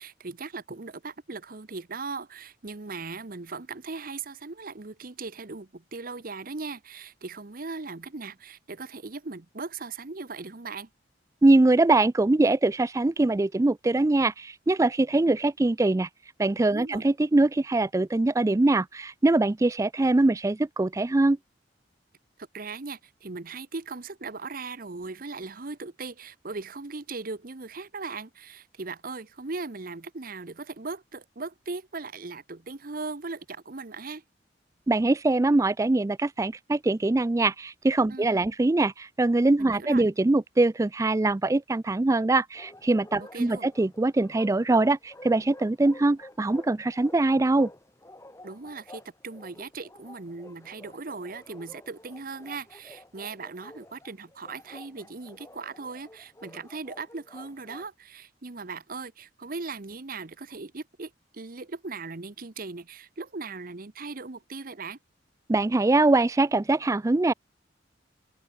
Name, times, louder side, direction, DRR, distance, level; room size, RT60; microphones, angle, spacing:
voice 1, 0.0-10.9 16.7-17.0 22.4-34.2 38.1-38.5 39.6-40.1 43.2-43.7 48.4-65.0, right 3 dB, 50° right, 1.0 m, -38 dB
voice 2, 11.4-16.1 16.4-21.4 34.9-47.7 65.5-67.3, right 2 dB, 15° right, 0.3 m, -23 dB
Bark, 42.5-57.9, left 1 dB, 15° left, 3.0 m, -50 dB
head